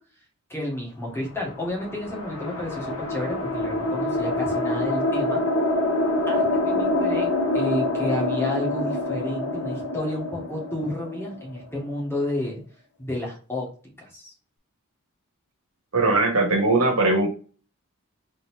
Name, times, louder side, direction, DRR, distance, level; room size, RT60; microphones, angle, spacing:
voice 1, 0.5-5.4 6.0-7.3 7.5-12.6 13.0-13.7 14.0-14.3, left 1 dB, 10° left, -2 dB, 1.7 m, -31 dB
sound 1, 1.4-11.8, left 1 dB, 85° left, 1.4 m, -26 dB
voice 2, 15.9-17.3, right 2 dB, 75° right, 3 dB, 1.4 m, -20 dB
4.0 x 3.8 x 2.7 m, 0.37 s
head